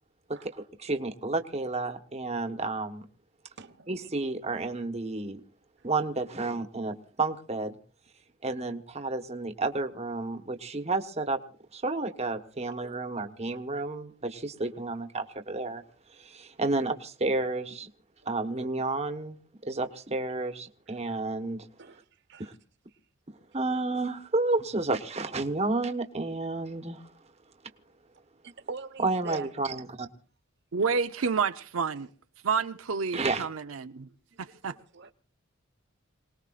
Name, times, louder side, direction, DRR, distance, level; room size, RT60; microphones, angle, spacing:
voice 1, 0.4-3.0 3.9-5.4 5.8-7.7 8.4-11.4 11.7-15.8 16.1-17.9 18.3-21.6 22.4-22.5 23.5-27.1 29.0-30.1 33.1-33.5, right 3 dB, 30° right, 1.2 m, -31 dB
voice 2, 3.6-3.9 12.6-12.7 18.2-18.4 21.8-22.0 22.3-22.5 28.4-29.5 34.3-35.1, right 4 dB, 55° right, 1.1 m, -43 dB
voice 3, 30.7-32.1 32.4-34.1 34.4-34.8, right 5 dB, 75° right, 0.7 m, -29 dB
27.0 x 19.5 x 2.5 m
head